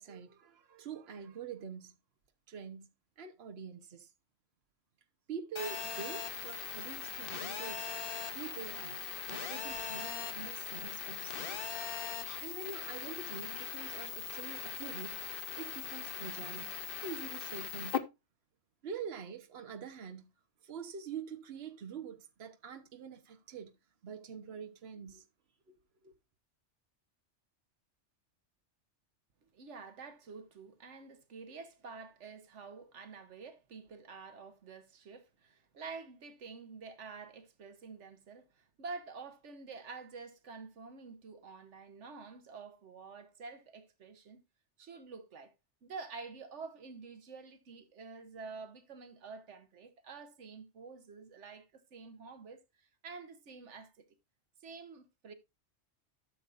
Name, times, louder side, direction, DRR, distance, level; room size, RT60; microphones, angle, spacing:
voice 1, 0.0-2.0 2.5-2.9 3.2-4.1 5.3-7.9 8.3-11.6 12.4-15.2 15.6-18.0 18.8-20.3 20.6-23.7 24.0-25.2 25.7-25.8 26.0-26.1, right 6 dB, 65° right, 1.2 m, -45 dB
Telephone, 5.6-18.0, left 7 dB, 55° left, 1.0 m, -40 dB
voice 2, 29.5-44.4 44.8-45.5 45.8-52.6 53.0-54.0 54.6-55.3, right 4 dB, 80° right, 1.3 m, -48 dB
13.0 x 6.9 x 2.5 m
omnidirectional pair, 1.2 m